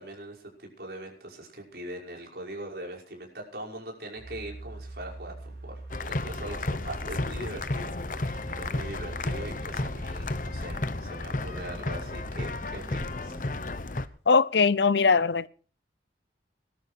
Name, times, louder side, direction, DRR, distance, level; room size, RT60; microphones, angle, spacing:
voice 1, 0.0-5.8 6.1-13.4, right 1 dB, 65° right, 5.7 m, -41 dB
sound 1, 4.2-12.3, right 2 dB, 90° right, 6.4 m, -45 dB
sound 2, 5.9-14.1, left 2 dB, 45° left, 0.9 m, -33 dB
sound 3, 8.4-13.5, equal, 15° right, 2.7 m, -48 dB
voice 2, 14.3-15.5, left 4 dB, 80° left, 0.7 m, -21 dB
19.0 x 13.0 x 4.5 m
head